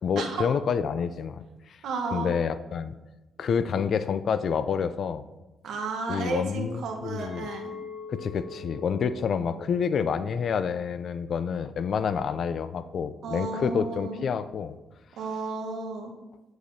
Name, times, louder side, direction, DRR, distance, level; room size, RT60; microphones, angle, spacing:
voice 1, 0.0-1.8 2.1-3.0 3.4-5.2 6.1-7.5 8.1-14.8, left 6 dB, 55° left, 13 dB, 0.4 m, -28 dB
voice 2, 1.8-2.3 5.6-7.7 13.2-14.2 15.2-16.1, right 4 dB, 80° right, 3 dB, 1.1 m, -33 dB
Chink clink, 7.2-12.4, left 5 dB, 20° right, 2.7 m, -44 dB
8.4 x 7.7 x 2.7 m, 1.1 s
cardioid pair, 125°, 0 cm